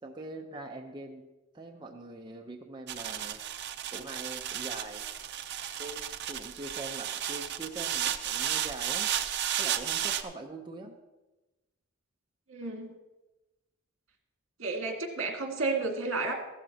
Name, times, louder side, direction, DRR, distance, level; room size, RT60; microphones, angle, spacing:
voice 1, 0.0-1.3 1.5-3.4 3.9-5.0 5.8-9.1 9.6-10.9, right 2 dB, 20° right, 0 dB, 0.8 m, -43 dB
sound 1, 2.9-10.2, right 10 dB, 55° right, 0.6 m, -33 dB
voice 2, 12.5-12.9 14.6-16.3, right 3 dB, 75° right, 2 dB, 2.0 m, -32 dB
15.0 x 12.5 x 2.9 m, 1.1 s
head